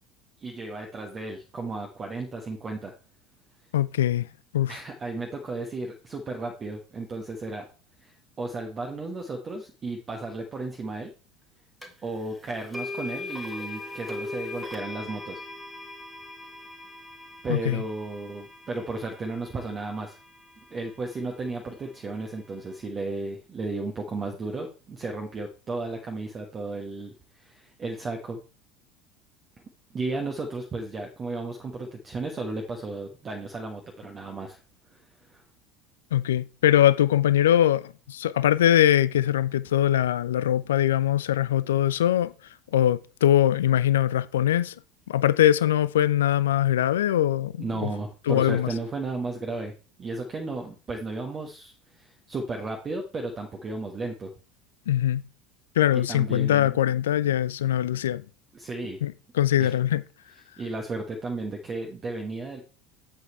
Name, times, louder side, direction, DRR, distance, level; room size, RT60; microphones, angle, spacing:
voice 1, 0.4-2.9 4.7-7.6 8.0-11.1 12.0-15.4 17.4-20.2 20.7-28.4 29.9-34.6 34.9-35.0 35.3-35.4 47.6-49.7 50.0-54.3 56.1-56.8 58.5-59.0 59.6-59.7 60.6-62.6, right 3 dB, 30° right, 1.3 m, -34 dB
voice 2, 3.7-4.3 4.5-4.8 17.5-17.8 36.1-42.3 42.7-44.8 45.1-47.9 48.3-48.7 54.9-55.2 55.8-58.2 59.0-60.0, left 11 dB, 70° left, 0.3 m, -22 dB
sound 1, 11.8-11.9 12.7-20.8, left 2 dB, ahead, 1.6 m, -40 dB
7.9 x 5.7 x 4.3 m
figure-of-eight pair, 70°, 0 cm